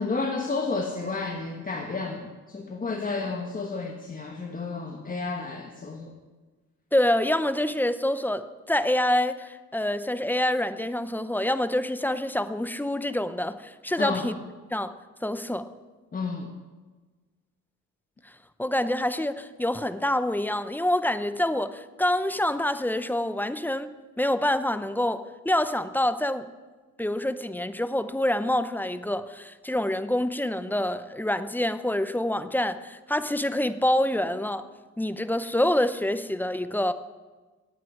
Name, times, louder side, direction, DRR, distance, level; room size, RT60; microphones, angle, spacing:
voice 1, 0.0-6.1 14.0-14.3 16.1-16.5, left 3 dB, 30° left, 2 dB, 1.3 m, -31 dB
voice 2, 6.9-14.4 14.7-14.9 15.2-15.7 18.6-26.5 27.0-34.7 35.0-36.9, left 1 dB, 5° left, 12 dB, 0.6 m, -26 dB
9.2 x 8.5 x 9.5 m, 1.3 s
cardioid pair, 90°, 30 cm